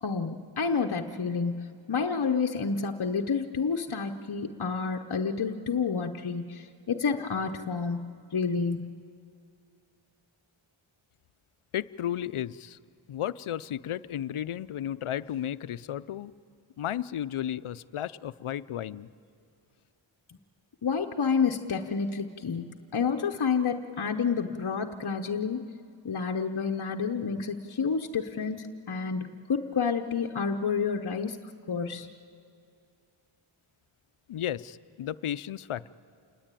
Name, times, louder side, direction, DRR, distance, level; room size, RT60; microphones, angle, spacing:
voice 1, 0.0-8.9 20.8-25.7 26.0-31.4 31.7-32.1, left 5 dB, 50° left, 3 dB, 1.0 m, -29 dB
voice 2, 11.7-12.8 13.1-16.3 16.8-19.1 34.3-35.9, left 11 dB, 80° left, 16 dB, 0.6 m, -33 dB
28.0 x 20.0 x 9.1 m, 2.4 s
wide cardioid pair, 80°, 49 cm